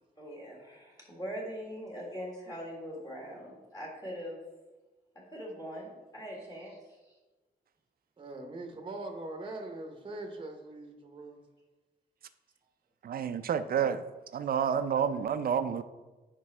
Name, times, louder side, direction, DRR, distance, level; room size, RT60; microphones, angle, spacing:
voice 1, 0.2-4.4 5.3-7.0, equal, 20° left, 1.6 m, -42 dB
voice 2, 8.2-11.5, right 2 dB, 30° right, 0.8 m, -42 dB
voice 3, 13.0-14.0 14.3-15.8, right 7 dB, 55° right, 0.4 m, -29 dB
9.4 x 5.2 x 3.2 m
wide cardioid pair, 160°, 18 cm